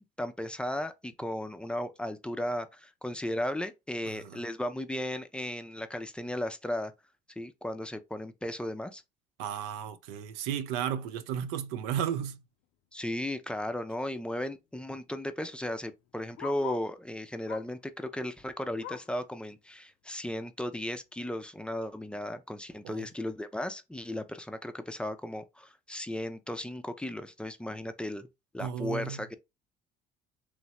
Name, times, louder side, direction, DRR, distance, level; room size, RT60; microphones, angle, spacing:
voice 1, 0.0-6.9 7.4-9.0 12.9-28.3 28.5-29.3, left 1 dB, 5° left, 0.4 m, -35 dB
voice 2, 9.4-12.4 22.8-23.0 28.6-29.2, right 9 dB, 80° right, 0.4 m, -34 dB
Bark, 13.5-13.6 13.8-13.9 14.1-17.0 17.4-17.9 18.2-19.2 19.7-19.8 20.2-20.3 21.0-21.1, left 10 dB, 70° left, 0.4 m, -46 dB
3.1 x 2.0 x 2.8 m
supercardioid pair, 75°, 21 cm